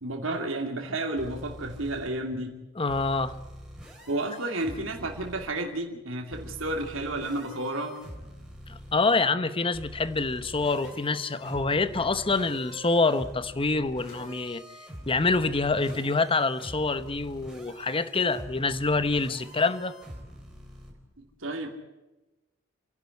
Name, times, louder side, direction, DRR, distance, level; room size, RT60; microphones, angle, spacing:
voice 1, 0.0-2.6 4.1-8.0 21.2-21.7, right 2 dB, 70° right, 2 dB, 2.7 m, -31 dB
sound 1, 1.2-2.1 2.9-5.4 6.3-8.9 9.7-20.9, equal, 5° right, 4.3 m, -45 dB
voice 2, 2.8-3.3 8.7-14.6 15.1-20.0, left 3 dB, 25° left, 13 dB, 0.9 m, -26 dB
sound 2, 10.8-11.1 12.3-12.6 14.0-14.4 15.9-16.3, left 1 dB, 65° left, 6.6 m, -48 dB
29.0 x 11.0 x 9.6 m, 1.0 s
head